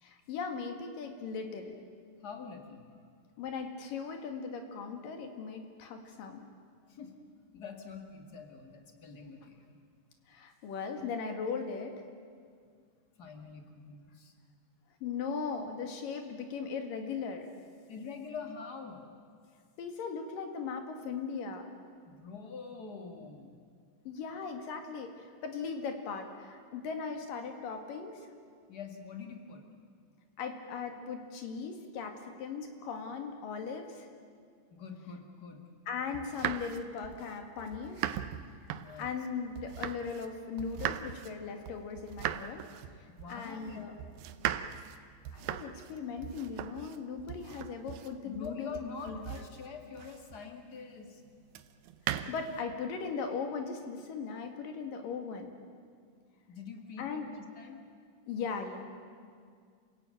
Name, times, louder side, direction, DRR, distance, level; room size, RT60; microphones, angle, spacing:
voice 1, 0.0-1.8 3.4-6.5 10.3-12.0 15.0-17.5 19.8-21.7 24.1-28.2 30.4-34.1 35.9-38.1 39.0-42.6 43.3-43.9 45.3-49.2 52.3-55.5 57.0-57.3 58.3-58.9, left 5 dB, 75° left, 5 dB, 3.7 m, -38 dB
voice 2, 2.2-2.8 6.9-7.1 7.5-9.8 13.2-14.3 17.9-19.1 22.1-23.6 28.7-29.6 34.7-35.6 38.8-39.2 43.1-43.8 48.2-51.2 56.5-57.3 57.6-57.8, left 5 dB, 35° left, 4 dB, 2.1 m, -45 dB
sound 1, 36.1-40.3 40.6-50.5 51.5-52.6, right 11 dB, 85° right, 2.6 m, -39 dB
28.0 x 16.5 x 9.1 m, 2.1 s
omnidirectional pair, 3.9 m